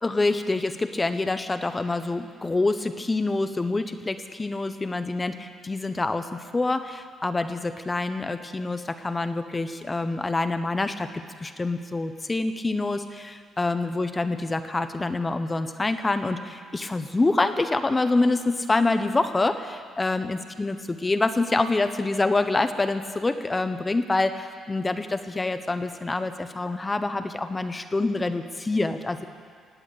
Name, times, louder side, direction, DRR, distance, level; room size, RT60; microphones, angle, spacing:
voice 1, 0.0-11.1 11.4-29.2, left 2 dB, 20° left, 9 dB, 0.8 m, -26 dB
18.0 x 8.4 x 8.3 m, 2.1 s
cardioid pair, 90°, 0 cm